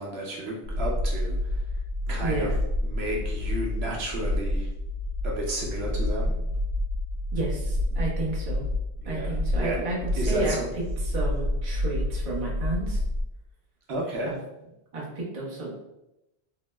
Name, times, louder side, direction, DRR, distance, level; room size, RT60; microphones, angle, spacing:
voice 1, 0.0-1.6 2.1-4.7 5.2-6.4 9.0-10.7 13.9-14.4, right 1 dB, 75° right, -2 dB, 0.9 m, -33 dB
sound 1, 0.6-13.2, left 1 dB, 55° right, 0.4 m, -29 dB
voice 2, 2.2-2.5 7.3-8.6 9.0-13.0 14.2-14.3 14.9-15.7, right 2 dB, 35° right, -4 dB, 0.8 m, -32 dB
2.9 x 2.0 x 3.2 m, 0.89 s
omnidirectional pair, 1.1 m